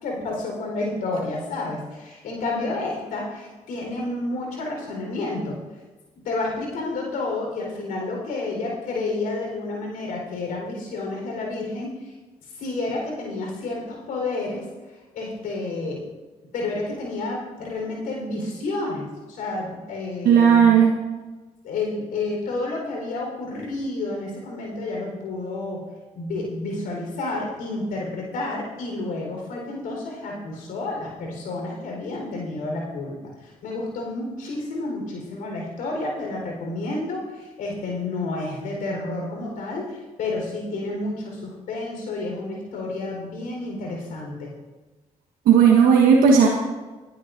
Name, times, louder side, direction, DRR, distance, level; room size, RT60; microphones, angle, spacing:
voice 1, 0.0-5.5 6.2-11.9 12.6-14.6 15.1-16.0 16.5-20.7 21.6-25.8 26.1-33.2 33.4-44.5, left 2 dB, 80° left, -1 dB, 4.3 m, -30 dB
voice 2, 20.2-20.9 45.5-46.5, right 7 dB, 85° right, -1 dB, 1.3 m, -14 dB
20.0 x 11.5 x 2.6 m, 1.2 s
supercardioid pair, 55°, 14 cm